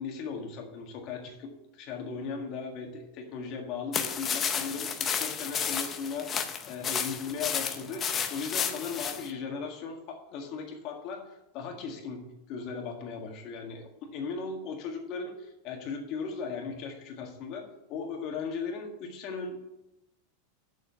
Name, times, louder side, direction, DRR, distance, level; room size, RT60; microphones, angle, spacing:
voice 1, 0.0-19.7, left 5 dB, 35° left, 2 dB, 1.7 m, -37 dB
sound 1, 3.9-9.3, left 7 dB, 20° left, 0.7 m, -32 dB
7.1 x 7.1 x 8.2 m, 0.89 s
supercardioid pair, 175°, 0 cm